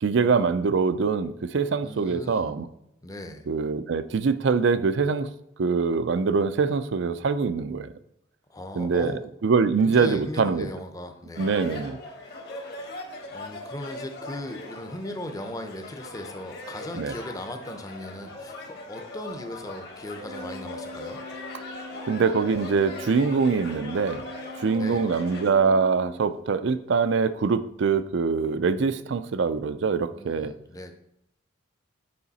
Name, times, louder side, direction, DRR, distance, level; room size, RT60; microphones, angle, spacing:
voice 1, 0.0-2.7 3.5-5.3 5.6-7.9 8.8-9.1 9.4-10.7 11.4-12.0 17.0-17.1 22.1-24.2 24.6-30.5, right 5 dB, 60° right, 13 dB, 0.4 m, -24 dB
voice 2, 1.8-2.5 3.0-3.5 8.5-9.2 9.8-11.6 12.2-12.4 13.3-21.2 24.7-25.1 30.1-30.9, left 1 dB, 15° left, 6 dB, 0.6 m, -38 dB
sound 1, 11.3-25.5, left 2 dB, 50° left, 1.4 m, -40 dB
Organ, 20.2-26.7, left 2 dB, 85° right, 0.9 m, -43 dB
8.6 x 4.8 x 4.1 m, 0.80 s
head